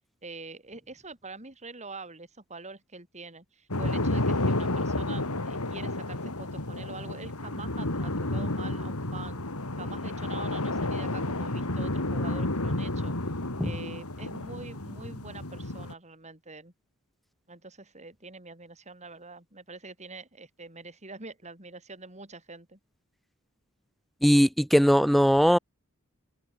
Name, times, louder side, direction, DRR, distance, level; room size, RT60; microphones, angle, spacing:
voice 1, 0.2-9.4 9.8-13.2 13.6-16.7 17.5-22.8, right 3 dB, 30° right, 7.9 m, -45 dB
sound 1, 3.7-15.9, left 2 dB, 90° left, 3.3 m, -31 dB
voice 2, 24.2-25.6, equal, ahead, 1.6 m, -20 dB
head